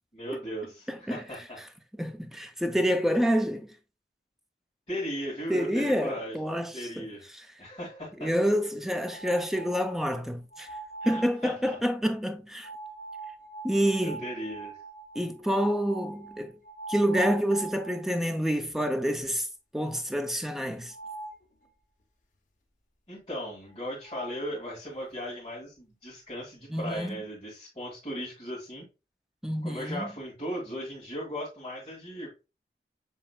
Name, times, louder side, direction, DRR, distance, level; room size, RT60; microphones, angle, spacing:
voice 1, 0.1-1.6 4.9-6.4 6.7-7.2 7.6-8.3 11.0-11.8 14.0-14.7 23.1-28.9 29.6-32.3, equal, 30° left, 1.8 m, -37 dB
voice 2, 0.9-1.2 2.0-3.7 5.5-7.1 7.3-7.5 8.2-10.7 11.0-12.7 13.6-14.2 15.2-16.6 16.9-19.5 19.7-20.9 26.7-27.2 29.4-30.1, equal, ahead, 0.3 m, -28 dB
sound 1, 8.9-10.0 10.5-11.4 12.6-18.2 18.7-18.8 19.2-19.3 20.9-21.4 23.7-23.8 24.0-24.4, right 3 dB, 45° left, 0.7 m, -42 dB
7.2 x 2.9 x 2.3 m
head